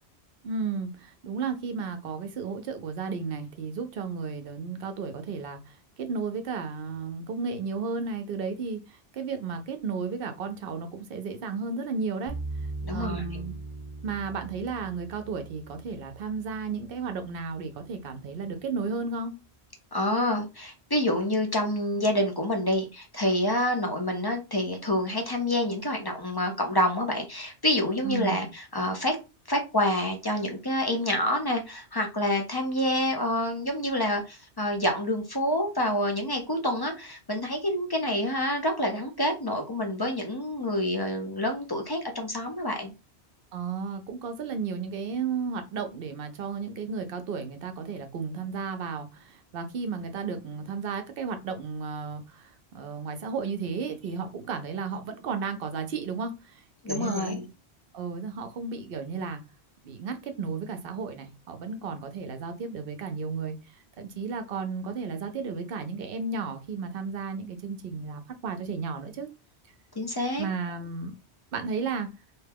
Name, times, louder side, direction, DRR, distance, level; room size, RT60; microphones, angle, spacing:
voice 1, 0.4-12.4 12.9-13.5 14.0-19.4 28.0-28.5 43.5-57.4 57.9-59.4 59.8-69.3 70.4-71.1 71.5-72.1, right 5 dB, 65° right, 0.8 m, -33 dB
sound 1, 12.3-17.4, right 2 dB, 35° right, 0.9 m, -39 dB
voice 2, 12.8-13.4 19.9-29.2 29.5-42.9 56.8-57.5 70.0-70.5, left 1 dB, 30° left, 0.4 m, -27 dB
2.8 x 2.2 x 3.4 m
omnidirectional pair, 1.1 m